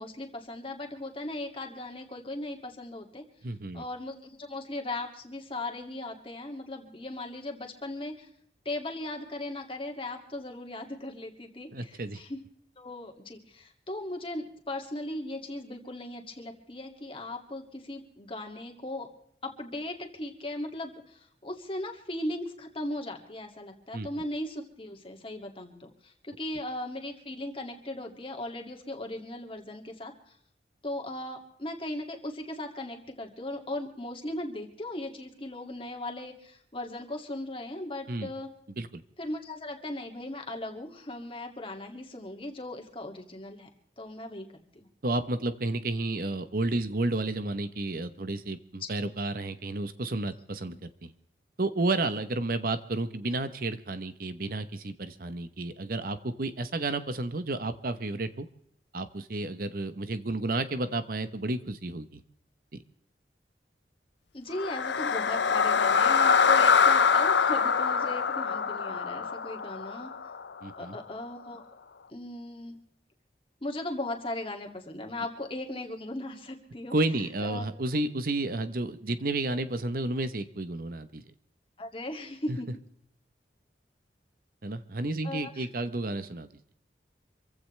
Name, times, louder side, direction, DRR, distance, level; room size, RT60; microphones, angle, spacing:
voice 1, 0.0-3.2 3.7-8.3 8.6-12.4 12.8-19.1 19.4-30.4 30.8-38.5 39.2-43.7 44.0-44.9 48.8-48.9 64.3-70.1 70.8-71.6 72.1-72.8 73.6-76.9 77.4-77.6 81.8-82.7 85.2-85.7, left 1 dB, 30° left, 3 dB, 2.4 m, -38 dB
voice 2, 3.4-3.8 11.7-12.2 23.9-24.1 38.1-38.3 38.8-39.0 45.0-51.1 51.6-58.5 58.9-62.2 62.7-62.8 70.6-71.0 76.9-81.2 82.5-82.6 84.6-86.5, right 2 dB, 55° right, 11 dB, 1.0 m, -31 dB
sound 1, 64.5-70.7, left 6 dB, 90° left, 0.7 m, -24 dB
27.0 x 15.5 x 3.3 m, 0.65 s
head